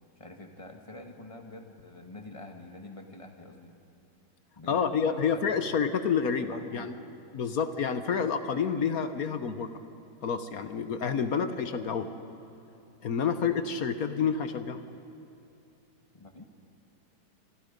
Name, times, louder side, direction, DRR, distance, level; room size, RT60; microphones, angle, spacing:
voice 1, 0.1-3.7 4.6-5.7 6.5-6.9 16.1-16.4, left 2 dB, 15° left, 4 dB, 1.4 m, -46 dB
voice 2, 4.7-6.9 7.3-9.7 10.2-12.1 13.0-14.8, left 6 dB, 55° left, 9 dB, 1.1 m, -29 dB
26.5 x 25.0 x 5.3 m, 2.7 s
omnidirectional pair, 2.2 m